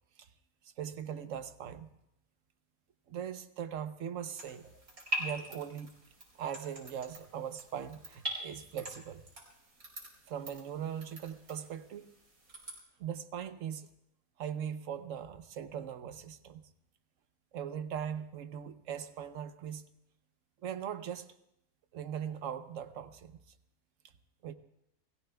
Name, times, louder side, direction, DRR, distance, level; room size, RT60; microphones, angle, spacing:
voice 1, 0.6-1.9 3.1-4.7 5.2-5.9 6.3-9.2 10.3-12.1 13.0-13.9 14.4-16.7 17.5-19.9 20.6-21.3 21.9-23.4 24.4-24.5, right 8 dB, 65° right, 10 dB, 1.1 m, -40 dB
sound 1, 4.4-12.8, equal, 80° right, 4.4 m, -43 dB
29.5 x 18.0 x 2.3 m, 0.79 s
omnidirectional pair, 1.5 m